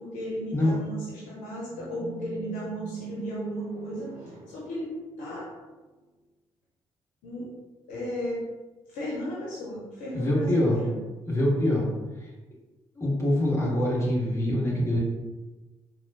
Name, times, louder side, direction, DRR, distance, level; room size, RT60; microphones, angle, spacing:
voice 1, 0.0-5.5 7.2-7.5 7.9-8.4 8.9-11.0, equal, 65° left, -6 dB, 0.8 m, -35 dB
sound 1, 1.7-5.8, right 4 dB, 65° right, 0.6 m, -40 dB
voice 2, 10.1-10.8 11.3-11.9 13.0-15.0, left 1 dB, 20° left, -5 dB, 1.5 m, -24 dB
4.1 x 2.5 x 2.7 m, 1.2 s
figure-of-eight pair, 40°, 14 cm